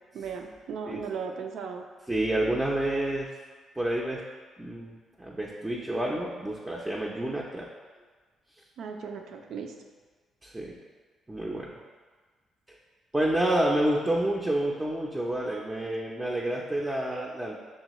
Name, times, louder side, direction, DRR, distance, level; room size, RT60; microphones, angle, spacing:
voice 1, 0.1-1.8 8.8-9.7, right 6 dB, 75° right, 3 dB, 0.4 m, -36 dB
voice 2, 2.1-3.3 3.8-4.2 4.6-7.7 10.4-10.8 11.3-11.8 13.1-17.5, right 1 dB, 10° right, -3 dB, 0.5 m, -29 dB
6.2 x 2.2 x 3.0 m, 1.4 s
cardioid pair, 90°, 0 cm